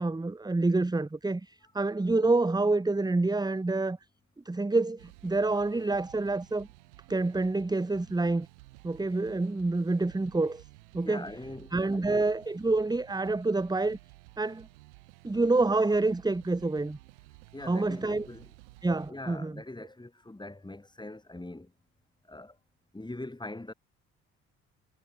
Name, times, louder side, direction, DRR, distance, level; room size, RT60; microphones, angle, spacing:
voice 1, 0.0-4.0 4.4-6.7 7.1-8.5 8.8-10.6 10.9-11.3 11.7-14.0 14.4-14.7 15.2-17.0 17.7-18.3 18.8-19.6, right 2 dB, 10° right, 1.2 m, -27 dB
sound 1, 5.0-19.1, right 23 dB, 90° right, 3.6 m, -54 dB
voice 2, 11.0-12.3 17.5-18.5 19.1-21.7 22.3-22.6 22.9-23.7, left 2 dB, 15° left, 5.1 m, -42 dB
hypercardioid pair, 55°, 34 cm